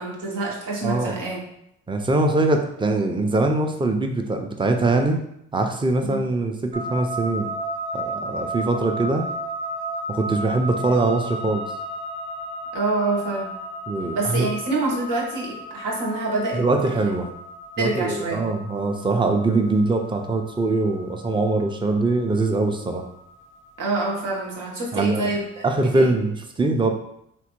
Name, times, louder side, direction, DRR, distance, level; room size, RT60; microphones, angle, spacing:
voice 1, 0.0-1.4 6.0-6.2 12.7-13.5 14.1-17.1 17.8-18.5 23.8-26.1, right 2 dB, 75° right, -2 dB, 0.9 m, -26 dB
voice 2, 0.8-1.2 1.9-5.2 5.5-7.5 7.9-9.2 10.1-11.6 13.9-14.5 16.5-17.3 17.8-23.1 24.9-25.3 25.6-27.0, right 2 dB, 15° right, 5 dB, 0.5 m, -22 dB
sound 1, 6.7-25.8, right 1 dB, 40° right, 0.9 m, -34 dB
3.2 x 2.2 x 2.9 m, 0.76 s
supercardioid pair, 50°, 32 cm